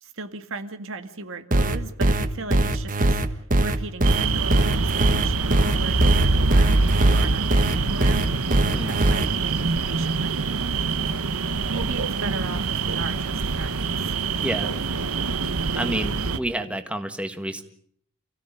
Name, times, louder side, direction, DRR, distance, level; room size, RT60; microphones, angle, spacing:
voice 1, 0.0-8.3 8.8-10.8 11.7-14.1, right 3 dB, 65° right, 8 dB, 1.9 m, -37 dB
sound 1, 1.5-9.3, right 1 dB, 40° right, 1.4 m, -21 dB
sound 2, 4.0-16.4, right 3 dB, 90° right, 1.2 m, -25 dB
voice 2, 8.7-9.0 14.4-14.7 15.7-17.6, right 1 dB, 5° right, 7 dB, 1.7 m, -29 dB
28.5 x 16.5 x 8.8 m, 0.65 s
head